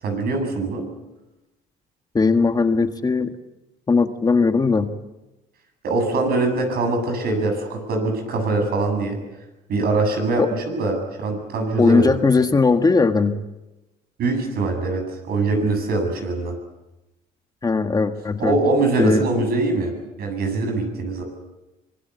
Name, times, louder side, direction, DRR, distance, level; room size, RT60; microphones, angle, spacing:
voice 1, 0.0-0.9 5.8-9.2 9.7-12.2 14.2-16.5 18.4-19.9 20.2-21.2, right 3 dB, 65° right, 5 dB, 7.7 m, -23 dB
voice 2, 2.1-3.3 3.9-4.9 10.4-10.5 11.8-13.4 17.6-18.6 19.0-19.2, left 4 dB, 25° left, 7 dB, 1.6 m, -18 dB
25.0 x 21.5 x 8.3 m, 1.0 s
cardioid pair, 110°, 17 cm